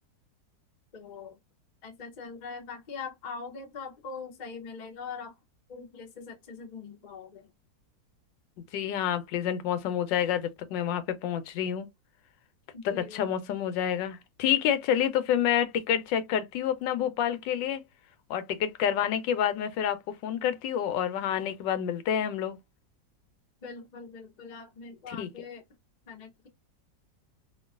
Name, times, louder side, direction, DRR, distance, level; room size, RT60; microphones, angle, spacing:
voice 1, 0.9-1.4 1.8-5.4 5.7-7.5 12.7-13.3 23.6-25.6 26.1-26.5, left 5 dB, 50° left, 0.5 m, -42 dB
voice 2, 8.7-11.9 12.8-17.8 18.3-22.6 25.1-25.3, left 9 dB, 85° left, 1.3 m, -28 dB
2.9 x 2.4 x 2.3 m
omnidirectional pair, 1.9 m